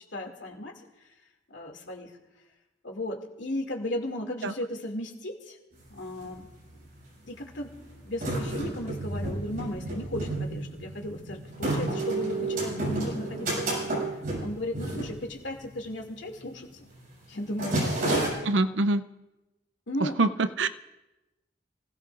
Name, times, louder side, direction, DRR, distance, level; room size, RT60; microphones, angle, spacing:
voice 1, 0.1-0.7 1.5-2.1 2.8-5.6 5.9-6.5 7.3-7.7 8.0-13.7 14.4-16.7 17.3-18.2 19.9-20.2, left 1 dB, 80° left, 1 dB, 2.4 m, -35 dB
sound 1, 5.8-5.9 6.1-6.9 7.5-15.8 16.1-16.4 16.7-17.0 17.3-18.3, right 2 dB, 50° right, 7.4 m, -31 dB
voice 2, 18.4-19.0 20.0-20.7, right 2 dB, 80° right, 12 dB, 0.6 m, -25 dB
28.5 x 17.0 x 2.5 m, 1.0 s
head